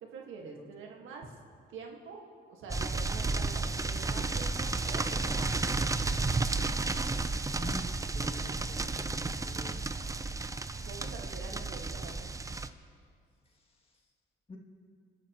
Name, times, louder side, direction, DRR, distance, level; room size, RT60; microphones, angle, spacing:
voice 1, 0.0-1.4 1.7-5.8 10.8-12.3, right 4 dB, 85° right, 1 dB, 1.7 m, -46 dB
sound 1, 2.7-12.7, right 3 dB, 15° right, 0.5 m, -32 dB
voice 2, 7.6-9.9 14.5-14.6, left 1 dB, 30° left, 1 dB, 2.3 m, -46 dB
27.5 x 12.0 x 3.0 m, 2.2 s
cardioid pair, 90°, 20 cm